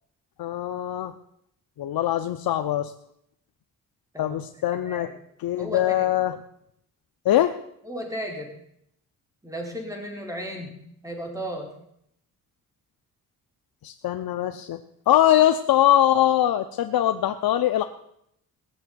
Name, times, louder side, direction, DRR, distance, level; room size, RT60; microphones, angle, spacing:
voice 1, 0.4-1.1 1.8-2.9 4.2-5.1 5.4-6.4 7.2-7.6 13.8-14.8 15.1-17.9, left 12 dB, 85° left, 8 dB, 0.8 m, -22 dB
voice 2, 4.7-5.1 5.6-6.1 7.8-8.5 9.4-11.7, equal, 10° right, 1 dB, 4.5 m, -35 dB
18.5 x 7.0 x 9.6 m, 0.75 s
cardioid pair, 95°, 35 cm